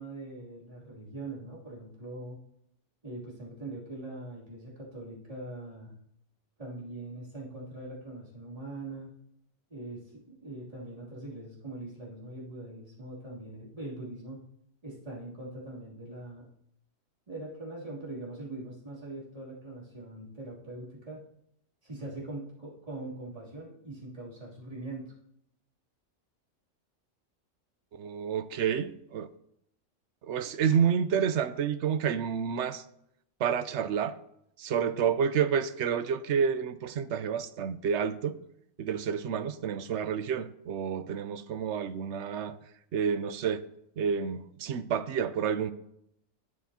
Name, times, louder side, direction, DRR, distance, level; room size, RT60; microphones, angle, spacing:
voice 1, 0.0-2.4 3.0-5.9 6.6-9.1 9.7-14.4 14.8-16.5 17.3-21.3 21.8-25.1, right 2 dB, 25° right, 3.0 m, -42 dB
voice 2, 27.9-29.3 30.2-32.8 33.4-34.2 34.6-38.3 38.8-42.6 42.9-43.6 44.0-45.7, right 7 dB, 65° right, 0.8 m, -29 dB
12.5 x 9.3 x 2.8 m
omnidirectional pair, 1.3 m